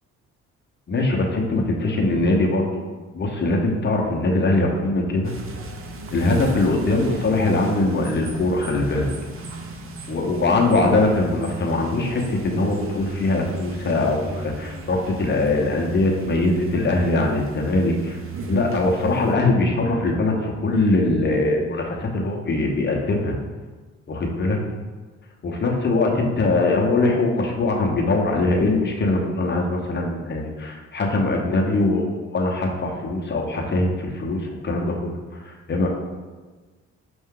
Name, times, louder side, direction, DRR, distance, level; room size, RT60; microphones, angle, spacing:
voice 1, 0.9-2.9 3.1-5.3 6.1-9.1 10.1-18.2 18.5-23.4 24.1-24.6 25.4-35.9, left 2 dB, 35° left, 1 dB, 0.9 m, -22 dB
sound 1, 5.2-19.4, right 3 dB, 45° right, 0.6 m, -36 dB
5.5 x 2.6 x 3.7 m, 1.3 s
cardioid pair, 90°, 30 cm